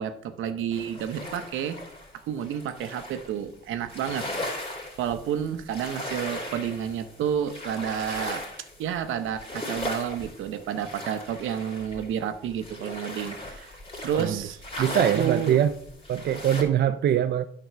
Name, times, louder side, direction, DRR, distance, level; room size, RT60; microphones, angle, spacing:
voice 1, 0.0-1.8 2.2-8.5 8.8-13.8 14.0-15.6, right 9 dB, 85° right, 10 dB, 0.8 m, -30 dB
sound 1, 0.7-3.4 3.9-16.6, left 1 dB, 30° left, 3.0 m, -37 dB
voice 2, 14.8-15.7 16.1-17.4, right 10 dB, 55° right, 10 dB, 0.5 m, -23 dB
9.1 x 3.9 x 6.7 m, 0.64 s
cardioid pair, 90°, 20 cm